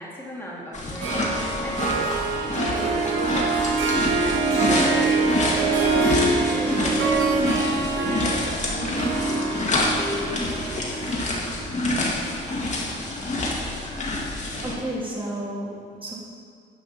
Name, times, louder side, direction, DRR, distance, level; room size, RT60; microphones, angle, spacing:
voice 1, 0.0-3.5 4.2-5.3 5.6-8.2 8.7-11.2, equal, 10° left, -6 dB, 1.8 m, -36 dB
sound 1, 0.7-14.7, left 2 dB, 35° left, 1.8 m, -27 dB
Harp, 1.0-12.4, right 3 dB, 85° right, 1.1 m, -25 dB
sound 2, 4.2-4.9 6.5-7.4 8.3-9.6, right 2 dB, 65° right, 1.6 m, -38 dB
voice 2, 14.3-16.1, right 1 dB, 25° right, -5 dB, 2.3 m, -32 dB
10.0 x 5.5 x 4.2 m, 2.1 s
cardioid pair, 90°, 20 cm